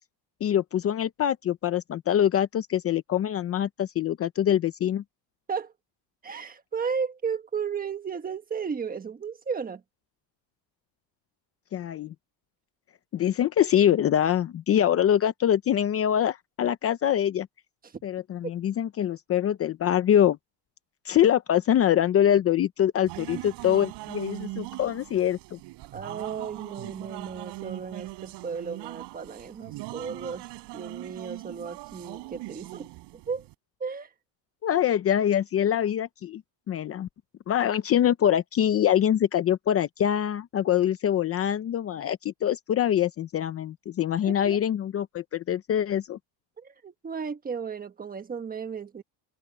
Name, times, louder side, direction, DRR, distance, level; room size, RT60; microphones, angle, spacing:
voice 1, 0.4-5.0 11.7-12.1 13.1-17.5 18.0-20.4 21.0-25.6 34.6-36.4 36.7-37.1 37.5-46.2, left 10 dB, 30° left, 0.7 m, -24 dB
voice 2, 6.2-9.8 17.8-18.0 25.9-30.5 30.7-32.9 33.3-33.4 33.8-34.1 44.2-44.6 46.6-49.0, right 6 dB, 20° right, 1.3 m, -34 dB
sound 1, 23.1-33.5, right 20 dB, 65° right, 5.3 m, -40 dB
cardioid pair, 155°, 45 cm